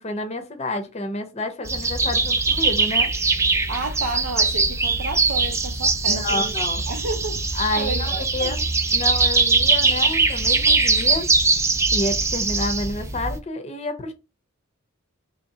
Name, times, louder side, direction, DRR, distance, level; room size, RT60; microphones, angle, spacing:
voice 1, 0.0-3.1 6.1-6.8 7.6-8.6 8.9-11.3 11.9-14.1, left 2 dB, 30° left, 0.6 m, -29 dB
sound 1, 1.6-13.4, right 3 dB, 15° right, 0.4 m, -21 dB
voice 2, 3.7-6.6 6.9-8.5 9.8-10.0, right 3 dB, 80° right, 0.6 m, -31 dB
3.1 x 2.7 x 4.1 m
head